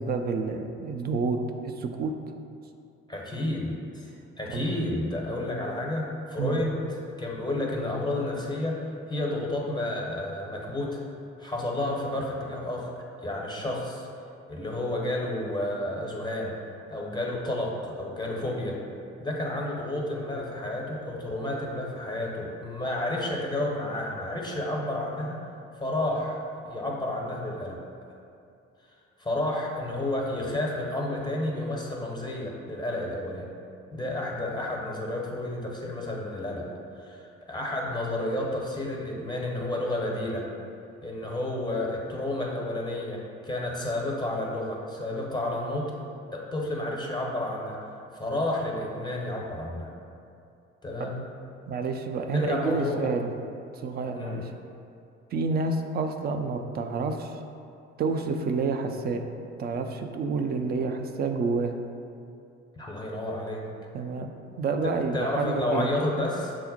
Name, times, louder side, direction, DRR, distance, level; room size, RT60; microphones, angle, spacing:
voice 1, 0.0-2.1 4.5-4.7 6.4-6.6 51.0-51.1 51.7-53.3 53.8-54.5 55.3-57.4 58.0-59.3 59.6-61.7 63.9-65.9, right 4 dB, 30° right, 5 dB, 0.3 m, -29 dB
voice 2, 3.1-4.1 4.4-8.8 9.1-11.0 11.4-12.9 13.2-14.1 14.5-16.6 16.9-18.8 19.2-25.4 25.7-26.4 26.7-27.8 29.2-33.5 33.9-36.6 37.0-40.5 41.0-45.9 46.3-47.8 48.1-49.9 50.8-51.2 52.3-53.0 54.1-54.4 62.8-63.6 64.8-66.5, left 1 dB, 10° left, -2 dB, 0.7 m, -31 dB
6.1 x 2.0 x 4.0 m, 2.5 s
figure-of-eight pair, 50°, 36 cm